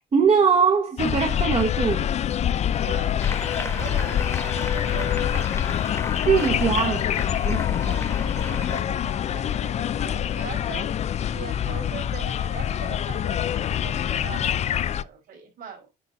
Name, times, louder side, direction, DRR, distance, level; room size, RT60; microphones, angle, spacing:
voice 1, 0.0-2.1 6.3-7.0 7.4-7.9, right 6 dB, 35° right, 1.4 m, -21 dB
sound 1, 1.0-15.0, left 10 dB, 40° left, 0.4 m, -25 dB
voice 2, 2.8-3.3 3.5-5.7 6.2-7.0 7.6-11.0 11.3-15.9, right 6 dB, 60° right, 5.1 m, -41 dB
Applause, 3.2-8.8, left 3 dB, 15° left, 1.3 m, -36 dB
10.0 x 4.2 x 4.0 m
cardioid pair, 110°, 17 cm